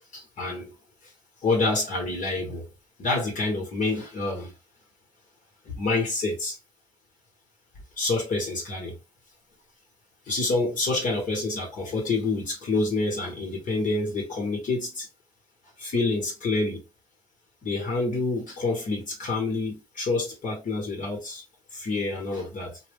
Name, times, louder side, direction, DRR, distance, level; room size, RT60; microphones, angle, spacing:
voice 1, 0.1-0.7 1.4-2.6 3.0-4.5 5.7-6.6 8.0-9.0 10.3-15.1 15.8-16.8 17.6-21.4 21.7-22.8, left 3 dB, 65° left, 1.1 m, -27 dB
2.2 x 2.1 x 3.4 m
hypercardioid pair, 40°, 15 cm